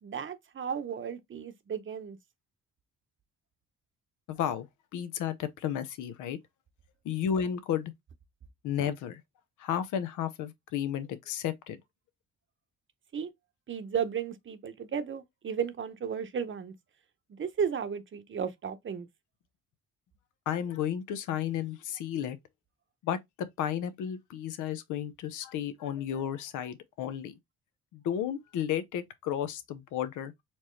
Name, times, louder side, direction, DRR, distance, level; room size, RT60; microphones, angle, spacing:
voice 1, 0.0-2.2 13.1-13.3 13.7-16.7 17.4-19.1, right 7 dB, 40° right, 0.8 m, -34 dB
voice 2, 4.3-4.7 4.9-6.4 7.0-7.9 8.6-9.2 9.6-11.8 20.5-22.4 23.0-27.3 27.9-30.3, left 9 dB, 85° left, 0.7 m, -33 dB
4.4 x 2.9 x 3.2 m
cardioid pair, 90°, 30 cm